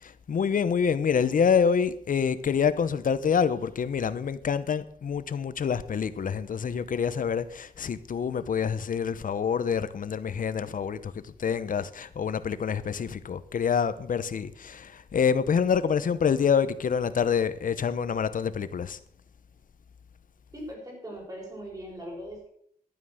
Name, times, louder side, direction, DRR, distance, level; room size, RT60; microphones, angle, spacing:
voice 1, 0.0-19.0, left 7 dB, 60° left, 0.9 m, -27 dB
voice 2, 20.5-22.5, equal, 25° right, 6.1 m, -40 dB
12.0 x 9.2 x 6.5 m
wide cardioid pair, 120°, 15 cm